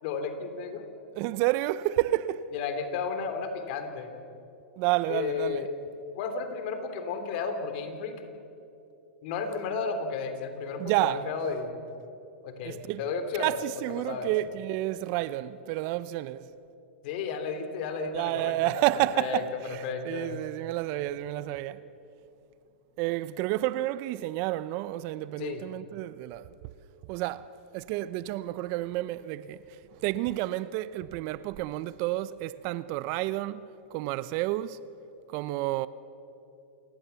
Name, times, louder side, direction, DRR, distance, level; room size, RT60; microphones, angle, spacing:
voice 1, 0.0-0.9 2.5-4.1 5.1-5.7 6.1-8.1 9.2-11.8 12.4-13.6 13.9-14.3 17.0-18.7 19.1-20.4 25.4-25.6, left 5 dB, 55° left, 3.3 m, -33 dB
voice 2, 1.1-2.5 4.8-5.7 10.8-11.3 12.6-13.0 13.4-16.5 18.1-21.8 23.0-26.5 27.1-34.8 35.3-35.9, right 16 dB, 45° right, 0.7 m, -30 dB
28.5 x 19.0 x 7.1 m
hypercardioid pair, 125°, 6 cm